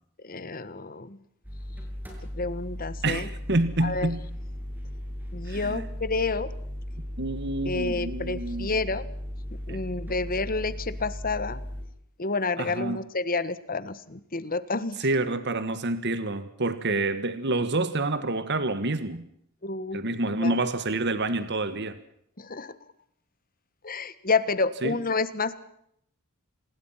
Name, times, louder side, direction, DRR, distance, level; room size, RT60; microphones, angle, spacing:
voice 1, 0.2-1.2 2.3-3.3 3.8-4.1 5.3-6.5 7.6-9.0 9.7-11.6 12.2-15.0 19.6-20.0 20.4-20.5 22.4-22.7 23.8-25.6, left 3 dB, 40° left, 15 dB, 1.5 m, -29 dB
sound 1, 1.4-11.9, left 1 dB, 10° right, 7.5 m, -36 dB
voice 2, 3.0-4.2 5.5-5.9 7.2-8.7 9.7-9.8 12.6-13.0 15.0-19.2 19.9-22.0 24.8-25.0, right 2 dB, 50° right, 12 dB, 1.6 m, -28 dB
27.5 x 21.0 x 5.8 m, 0.73 s
head